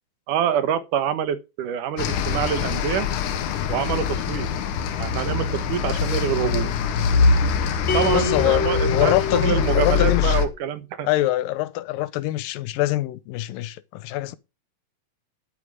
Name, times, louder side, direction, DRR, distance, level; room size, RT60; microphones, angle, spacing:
voice 1, 0.3-3.1 3.7-4.5 5.0-6.7 7.9-11.1, right 9 dB, 75° right, 2.7 m, -26 dB
sound 1, 2.0-10.5, left 6 dB, 70° left, 2.6 m, -23 dB
sound 2, 7.9-10.3, left 3 dB, 40° left, 2.2 m, -26 dB
voice 2, 8.1-10.4 11.0-14.4, left 16 dB, 90° left, 2.4 m, -24 dB
12.0 x 8.2 x 4.9 m
omnidirectional pair, 3.9 m